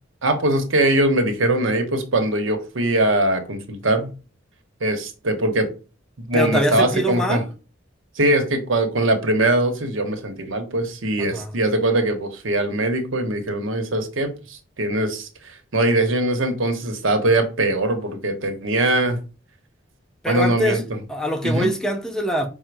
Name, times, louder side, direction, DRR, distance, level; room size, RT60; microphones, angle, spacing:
voice 1, 0.2-4.1 4.8-5.7 6.3-7.4 8.2-19.2 20.3-20.8 21.4-21.7, right 1 dB, 85° right, 0.9 m, -21 dB
voice 2, 6.3-7.4 11.2-11.5 20.2-20.8 21.1-22.5, equal, 5° left, 0.5 m, -23 dB
5.0 x 2.1 x 4.6 m
head